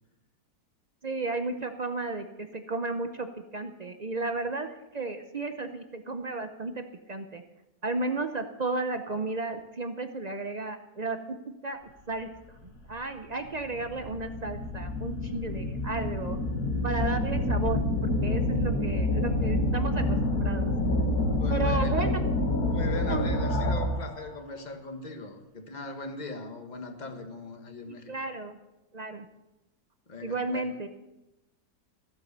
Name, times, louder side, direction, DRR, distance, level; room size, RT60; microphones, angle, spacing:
voice 1, 1.0-7.4 7.8-11.4 11.6-11.8 12.1-12.3 12.6-16.4 16.8-20.7 21.5-22.2 23.1-23.3 27.9-28.5 28.9-29.3 30.2-30.9, right 3 dB, 70° right, 7 dB, 0.4 m, -33 dB
sound 1, 12.7-12.8 13.4-24.1, left 1 dB, 65° left, 2.0 m, -28 dB
voice 2, 16.8-17.2 21.4-22.1 22.7-28.1 30.1-30.7, left 2 dB, 25° left, 4 dB, 1.5 m, -40 dB
15.0 x 8.4 x 6.7 m, 0.97 s
omnidirectional pair, 1.8 m